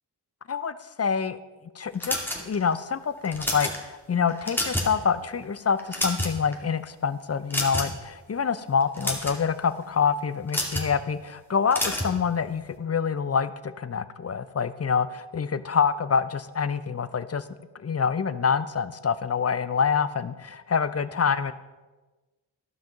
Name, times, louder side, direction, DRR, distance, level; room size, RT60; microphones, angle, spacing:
voice 1, 0.5-1.4 1.8-17.4 17.8-21.5, left 6 dB, 35° left, 14 dB, 0.6 m, -26 dB
sound 1, 2.0-2.7 3.2-3.8 4.3-5.0 5.3-5.4 5.8-6.5 7.5-8.0 8.8-9.4 10.5-10.9 11.7-12.1, left 1 dB, 5° left, 2.4 m, -28 dB
13.0 x 5.8 x 5.3 m, 1.2 s
supercardioid pair, 40°, 46 cm